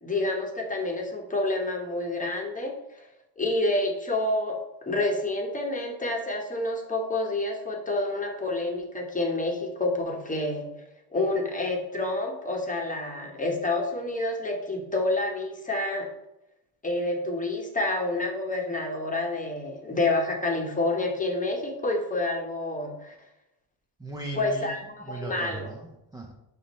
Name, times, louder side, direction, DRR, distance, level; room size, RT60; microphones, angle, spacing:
voice 1, 0.0-2.7 3.4-4.6 4.9-10.7 11.1-16.1 16.8-23.1 24.4-24.8 25.1-25.7, left 2 dB, 15° left, 1 dB, 0.9 m, -28 dB
voice 2, 24.0-26.3, right 2 dB, 10° right, 0 dB, 0.4 m, -38 dB
5.2 x 2.1 x 4.0 m, 0.88 s
cardioid pair, 80°, 47 cm